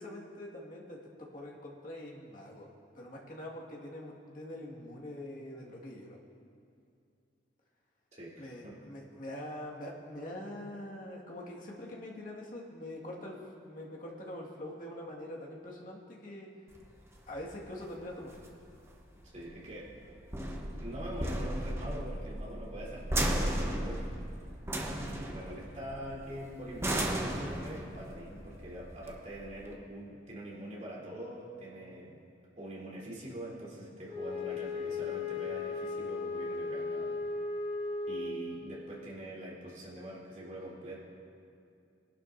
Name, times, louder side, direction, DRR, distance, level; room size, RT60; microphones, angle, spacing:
voice 1, 0.0-6.2 8.4-16.5 17.3-18.5, left 1 dB, 45° left, -3 dB, 1.8 m, -44 dB
voice 2, 8.1-8.8 19.3-19.9 20.8-24.1 24.9-32.2 32.6-37.2 38.1-41.0, right 1 dB, 40° right, -6 dB, 3.3 m, -44 dB
sound 1, 16.7-29.7, right 1 dB, 15° right, 0.9 m, -36 dB
Wind instrument woodwind instrument, 34.0-38.7, left 3 dB, 25° left, 3.1 m, -36 dB
21.5 x 11.5 x 2.6 m, 2.5 s
head